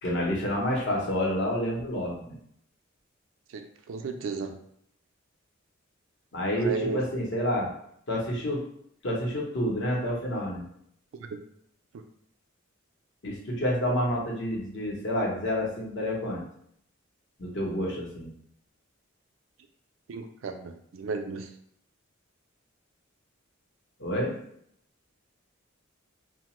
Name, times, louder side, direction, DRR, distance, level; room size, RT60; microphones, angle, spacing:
voice 1, 0.0-2.4 6.3-7.7 8.1-8.6 9.0-10.6 13.2-16.4 17.4-18.3 24.0-24.3, equal, 60° left, -2 dB, 0.8 m, -29 dB
voice 2, 3.9-4.6 6.5-7.0 20.1-21.5, right 4 dB, 70° right, 6 dB, 0.4 m, -34 dB
2.8 x 2.1 x 3.0 m, 0.70 s
head